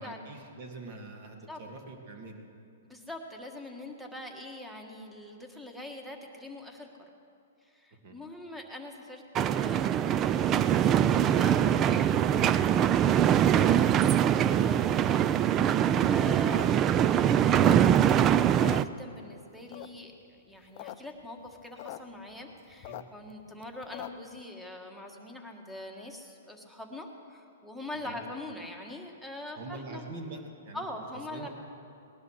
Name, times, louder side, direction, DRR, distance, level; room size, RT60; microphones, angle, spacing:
voice 1, 0.0-2.4 8.0-8.2 22.9-23.0 28.0-28.2 29.6-30.9 31.3-31.5, right 2 dB, 50° right, 3 dB, 2.4 m, -44 dB
voice 2, 2.8-6.9 7.6-12.6 13.4-16.9 17.4-30.0 30.7-31.5, left 1 dB, 5° right, 2 dB, 1.5 m, -43 dB
sound 1, 9.4-18.8, right 10 dB, 25° right, 0.4 m, -23 dB
sound 2, 16.4-18.2 18.5-19.4 19.7-20.2 20.6-21.0 21.2-21.3 21.5-22.0 22.3-24.3, left 16 dB, 45° left, 0.6 m, -43 dB
19.5 x 11.0 x 6.4 m, 2.7 s
hypercardioid pair, 145°, 0 cm